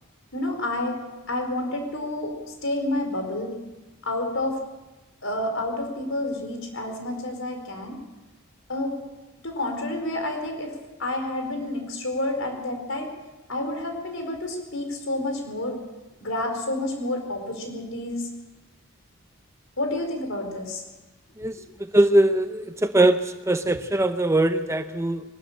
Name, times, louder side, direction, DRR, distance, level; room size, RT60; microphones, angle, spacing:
voice 1, 0.3-1.0 1.3-3.6 4.0-4.6 5.2-8.0 8.7-9.0 9.4-13.1 13.5-15.8 16.2-18.3 19.8-20.8 23.6-23.8, left 1 dB, 75° left, 4 dB, 4.6 m, -29 dB
voice 2, 21.9-23.2 23.5-25.2, right 1 dB, 15° right, 9 dB, 0.7 m, -21 dB
22.0 x 13.0 x 8.9 m, 1.1 s
head